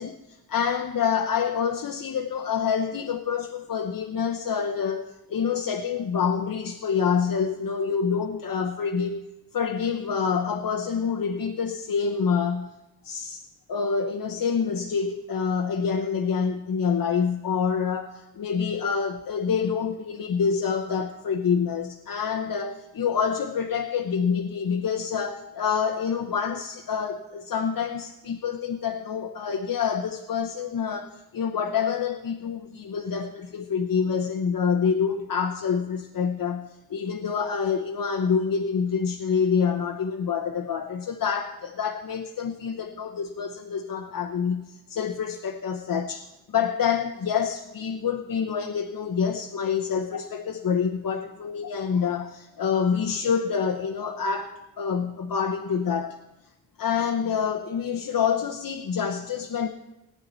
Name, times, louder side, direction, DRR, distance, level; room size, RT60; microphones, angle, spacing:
voice 1, 0.0-9.2 9.5-12.7 13.0-13.4 13.7-56.2 56.8-59.7, left 6 dB, 70° left, 0.9 m, -27 dB
18.0 x 9.7 x 4.0 m
wide cardioid pair, 105°, 36 cm